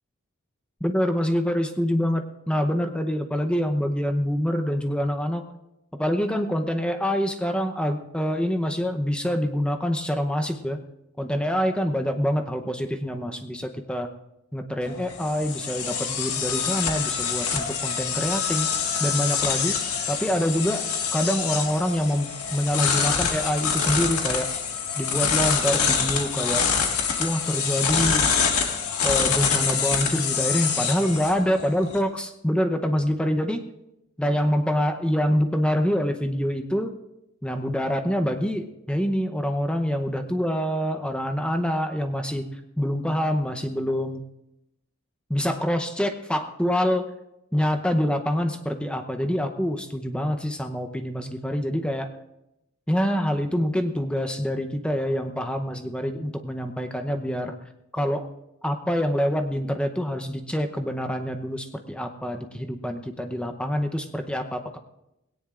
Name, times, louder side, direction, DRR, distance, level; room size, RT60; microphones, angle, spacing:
voice 1, 0.8-5.4 6.0-10.8 11.2-14.1 14.5-18.7 19.0-19.8 20.1-24.5 25.0-26.7 27.2-28.4 29.0-33.6 34.2-36.9 37.4-42.5 42.8-44.2 45.3-47.1 47.5-52.1 52.9-57.5 57.9-58.3 58.6-64.8, equal, 5° left, 6 dB, 0.7 m, -26 dB
sound 1, 14.8-32.0, left 6 dB, 85° left, 1.8 m, -26 dB
19.5 x 17.5 x 2.5 m, 0.88 s
head